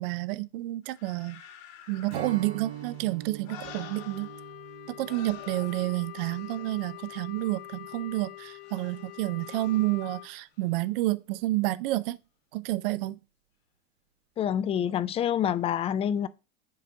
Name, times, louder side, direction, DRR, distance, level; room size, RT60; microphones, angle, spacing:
voice 1, 0.0-1.4 1.9-4.3 5.0-12.2 12.5-13.2, right 18 dB, 65° right, 0.5 m, -30 dB
sound 1, 0.8-4.8 5.0-7.6 8.6-10.1 10.6-10.7, left 9 dB, 55° left, 1.4 m, -50 dB
Strum, 2.1-7.5, right 9 dB, 85° right, 1.6 m, -44 dB
Wind instrument woodwind instrument, 3.6-10.3, left 17 dB, 70° left, 0.6 m, -45 dB
voice 2, 14.4-16.3, left 9 dB, 20° left, 0.4 m, -27 dB
7.5 x 2.7 x 5.6 m
hypercardioid pair, 110°, 30 cm